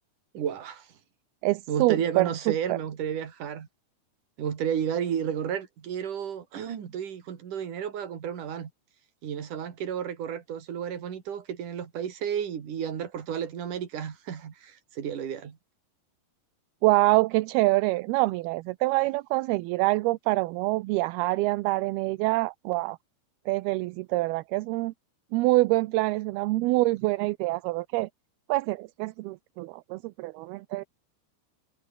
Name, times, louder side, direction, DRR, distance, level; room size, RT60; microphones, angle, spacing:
voice 1, 0.3-0.9 1.7-3.7 4.4-8.7 9.2-15.6, right 8 dB, 55° right, 3.9 m, -32 dB
voice 2, 1.4-2.8 16.8-23.0 23.5-24.9 25.3-28.1 28.5-30.8, right 20 dB, 80° right, 2.5 m, -25 dB
omnidirectional pair, 4.7 m